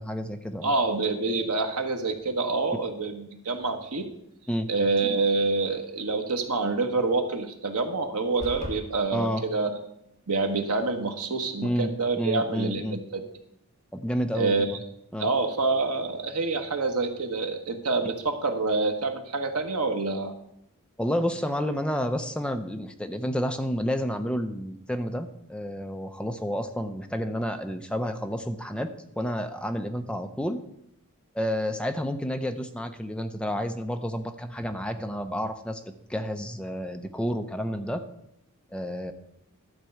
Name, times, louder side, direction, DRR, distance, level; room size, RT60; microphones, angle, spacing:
voice 1, 0.0-0.7 4.5-4.7 9.1-9.4 11.6-13.0 13.9-14.8 15.1-15.3 21.0-28.9 29.2-30.6 31.3-35.8 36.1-38.0 38.7-39.1, equal, 5° left, 6 dB, 0.5 m, -30 dB
voice 2, 0.6-4.1 4.7-9.8 10.3-13.2 14.3-14.7 15.2-20.3, right 3 dB, 85° right, 5 dB, 1.3 m, -27 dB
sound 1, 8.4-8.8, equal, 30° right, 1.8 m, -35 dB
12.0 x 4.5 x 7.8 m, 0.77 s
head